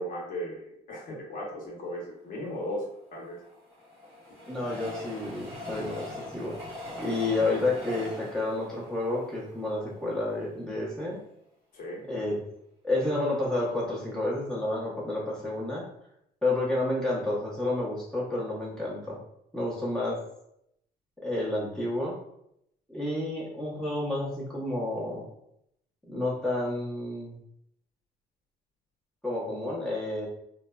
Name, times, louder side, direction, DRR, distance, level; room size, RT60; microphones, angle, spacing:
voice 1, 0.0-2.8 3.1-3.4 11.7-12.0, equal, 55° left, -3 dB, 0.9 m, -36 dB
Train, 2.9-10.2 10.7-10.8 11.0-11.1, left 2 dB, 15° right, 1.1 m, -41 dB
voice 2, 4.5-6.5 7.0-11.2 12.1-12.4 12.8-15.8 16.4-19.2 19.5-20.2 21.2-22.2 22.9-25.2 26.1-27.4 29.2-30.3, left 2 dB, 5° left, -6 dB, 0.8 m, -30 dB
3.1 x 2.0 x 2.3 m, 0.77 s
cardioid pair, 110°, 17 cm